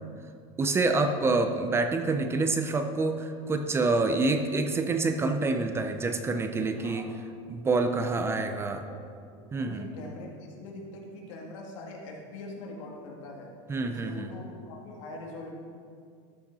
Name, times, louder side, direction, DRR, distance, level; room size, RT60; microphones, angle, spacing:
voice 1, 0.6-7.1 7.5-8.8 9.5-9.9 13.7-14.3, right 3 dB, 15° right, 6 dB, 0.5 m, -27 dB
voice 2, 6.8-7.4 7.9-9.1 9.3-10.3 10.6-13.5 13.9-15.5, left 2 dB, 85° left, -1 dB, 1.9 m, -43 dB
13.0 x 5.7 x 4.0 m, 2.3 s
supercardioid pair, 145°, 16 cm